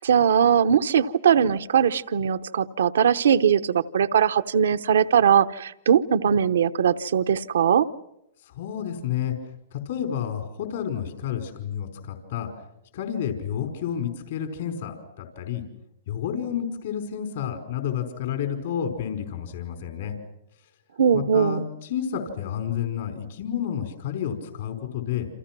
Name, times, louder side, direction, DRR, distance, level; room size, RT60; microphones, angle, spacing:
voice 1, 0.0-7.9 21.0-21.6, right 8 dB, 80° right, 11 dB, 0.9 m, -20 dB
voice 2, 8.4-9.3 9.7-12.5 12.9-15.6 16.1-20.1 21.1-25.3, left 9 dB, 65° left, 6 dB, 4.9 m, -30 dB
29.0 x 28.0 x 6.2 m, 0.82 s
hypercardioid pair, 130°, 0 cm